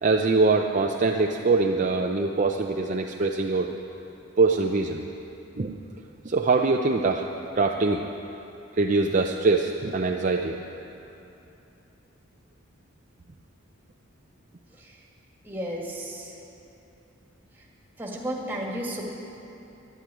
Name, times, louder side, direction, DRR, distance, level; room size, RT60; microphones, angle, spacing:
voice 1, 0.0-3.7 4.4-5.1 5.6-5.7 6.2-7.2 7.6-8.0 8.8-10.6, right 3 dB, 40° right, 2 dB, 0.5 m, -23 dB
voice 2, 15.4-16.3 18.0-19.0, right 1 dB, 10° right, -2 dB, 2.0 m, -33 dB
11.5 x 9.1 x 9.7 m, 2.9 s
head